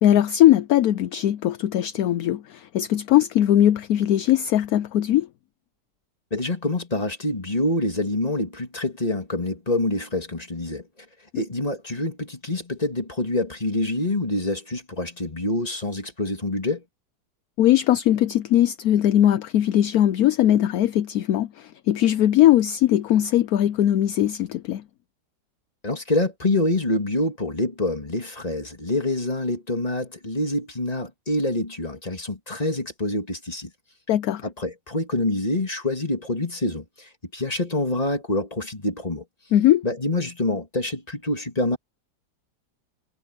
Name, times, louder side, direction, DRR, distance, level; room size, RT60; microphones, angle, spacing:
voice 1, 0.0-5.3 11.3-11.4 17.6-24.8 34.1-34.4 39.5-39.8, left 12 dB, 65° left, 0.9 m, -20 dB
voice 2, 6.3-10.8 11.3-16.8 25.8-33.7 34.4-39.2 39.8-41.8, left 2 dB, 20° left, 2.7 m, -26 dB
omnidirectional pair, 2.0 m